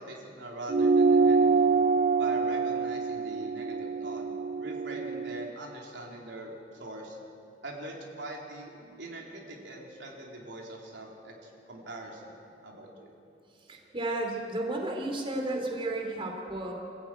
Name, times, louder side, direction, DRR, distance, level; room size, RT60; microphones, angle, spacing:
voice 1, 0.0-1.7 2.2-4.3 4.6-7.2 7.6-8.7 9.0-13.1, right 1 dB, 80° right, -1 dB, 3.7 m, -42 dB
sound 1, 0.7-5.5, right 4 dB, 50° right, 0.5 m, -25 dB
voice 2, 13.7-16.7, right 2 dB, 30° right, 1 dB, 3.0 m, -33 dB
27.0 x 15.0 x 9.2 m, 2.6 s
head